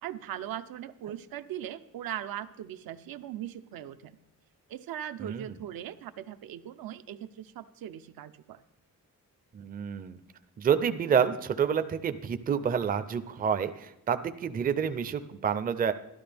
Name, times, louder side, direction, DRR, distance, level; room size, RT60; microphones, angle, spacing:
voice 1, 0.0-4.2 4.7-8.6, right 11 dB, 85° right, 11 dB, 0.6 m, -39 dB
voice 2, 5.2-5.6 9.5-10.2 10.6-15.9, right 7 dB, 25° right, 10 dB, 0.4 m, -28 dB
12.0 x 12.0 x 3.4 m, 0.84 s
wide cardioid pair, 155°, 34 cm